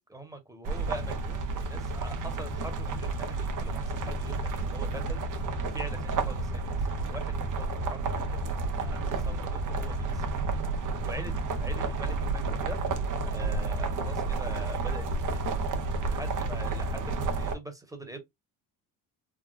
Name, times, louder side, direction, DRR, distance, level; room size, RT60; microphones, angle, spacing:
voice 1, 0.1-5.2 5.7-6.8 7.1-10.3 11.0-11.3 11.6-15.4 16.1-18.2, right 1 dB, 10° right, 1.1 m, -44 dB
sound 1, 0.6-17.5, right 3 dB, 50° right, 0.9 m, -31 dB
3.6 x 2.3 x 2.5 m
cardioid pair, 90°, 40 cm